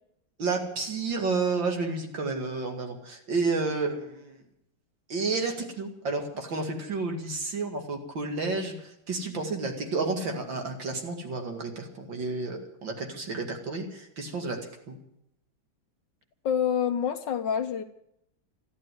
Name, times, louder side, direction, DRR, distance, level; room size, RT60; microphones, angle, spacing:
voice 1, 0.4-4.4 5.1-14.6 14.9-15.0, right 3 dB, 60° right, 3 dB, 2.9 m, -31 dB
voice 2, 16.4-17.8, left 8 dB, 65° left, 9 dB, 1.4 m, -27 dB
13.5 x 11.0 x 9.4 m, 0.80 s
omnidirectional pair, 2.3 m